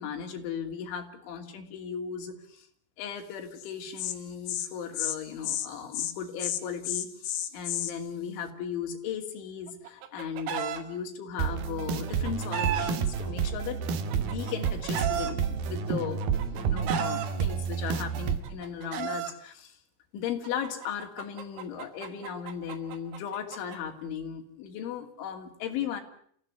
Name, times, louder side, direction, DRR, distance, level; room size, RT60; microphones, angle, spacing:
voice 1, 0.0-2.7 3.0-13.8 14.2-16.2 16.5-19.8 20.1-26.0, left 8 dB, 70° left, 3 dB, 5.1 m, -37 dB
Insect, 3.6-3.7 4.0-4.2 4.5-4.7 5.0-5.2 5.4-5.7 5.9-6.1 6.4-7.9, left 12 dB, 90° left, 4.4 m, -31 dB
Chicken rooster, 9.7-10.8 11.9-12.9 13.9-15.3 16.2-17.3 18.3-19.3 20.4-23.8, right 9 dB, 85° right, 4.8 m, -34 dB
sound 1, 11.4-18.4, right 6 dB, 60° right, 2.9 m, -30 dB
28.0 x 16.5 x 9.6 m, 0.63 s
omnidirectional pair, 5.8 m